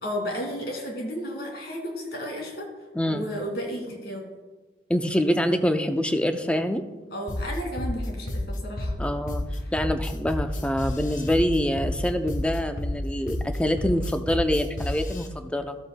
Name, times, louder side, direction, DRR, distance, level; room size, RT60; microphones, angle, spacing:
voice 1, 0.0-2.7 3.1-4.3 7.1-8.9 9.6-9.7, equal, 65° left, 0 dB, 2.3 m, -33 dB
voice 2, 2.9-3.3 4.9-6.8 9.0-15.8, equal, 5° left, 7 dB, 0.4 m, -25 dB
sound 1, 7.3-15.3, left 1 dB, 45° left, 0.8 m, -30 dB
14.5 x 8.0 x 2.2 m, 1.3 s
head